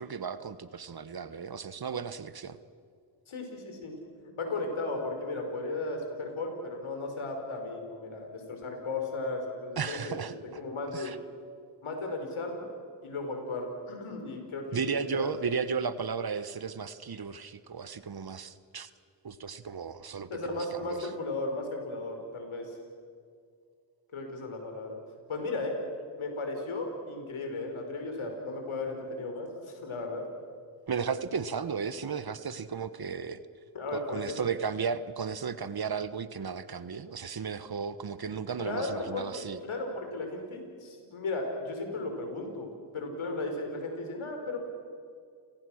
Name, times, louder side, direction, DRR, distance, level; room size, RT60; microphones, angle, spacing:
voice 1, 0.0-2.6 9.7-10.6 10.9-11.2 14.7-18.9 19.2-21.1 30.9-33.4 33.9-39.6, right 6 dB, 45° right, 14 dB, 1.2 m, -34 dB
voice 2, 3.3-3.9 4.4-10.2 10.5-11.1 11.8-12.7 13.0-15.4 20.3-22.8 24.1-25.0 25.3-25.8 26.2-30.2 33.7-34.4 38.6-44.6, left 2 dB, 70° left, 3 dB, 5.2 m, -35 dB
29.5 x 18.0 x 6.5 m, 2.2 s
cardioid pair, 50°, 50 cm